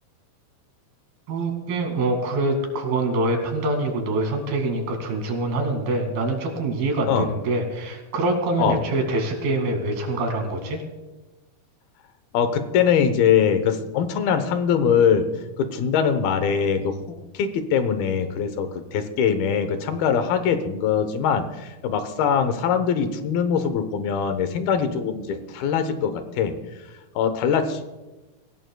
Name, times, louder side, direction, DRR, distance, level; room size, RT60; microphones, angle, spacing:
voice 1, 1.3-10.8, right 2 dB, 80° right, 3 dB, 4.2 m, -25 dB
voice 2, 12.3-15.3 15.6-26.5 27.2-27.8, left 7 dB, 80° left, 9 dB, 2.9 m, -22 dB
25.0 x 16.0 x 2.3 m, 1.1 s
omnidirectional pair, 4.4 m